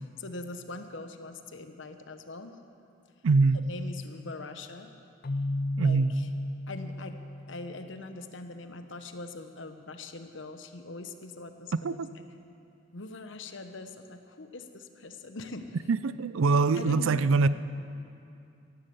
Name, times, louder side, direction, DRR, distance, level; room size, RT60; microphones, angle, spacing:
voice 1, 0.2-2.6 3.7-4.9 5.8-6.3 6.7-7.2 7.5-12.0 12.9-15.8 16.7-17.3, left 2 dB, 60° left, 8 dB, 0.9 m, -42 dB
voice 2, 3.2-3.7 5.8-6.2 11.7-12.1 15.9-17.5, right 4 dB, 70° right, 15 dB, 0.4 m, -24 dB
Keyboard (musical), 5.2-8.1, left 1 dB, 45° left, 0.5 m, -34 dB
13.5 x 12.0 x 7.9 m, 2.6 s
head